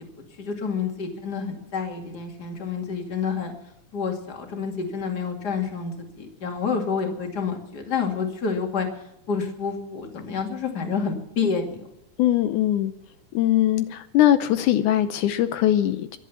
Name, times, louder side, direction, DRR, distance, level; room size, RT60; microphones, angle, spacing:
voice 1, 0.2-3.5 3.9-8.9 9.3-11.8, left 5 dB, 35° left, 3 dB, 2.7 m, -28 dB
voice 2, 12.2-12.9 13.3-16.2, left 12 dB, 80° left, 10 dB, 2.2 m, -21 dB
23.5 x 8.4 x 7.1 m, 0.84 s
omnidirectional pair, 3.6 m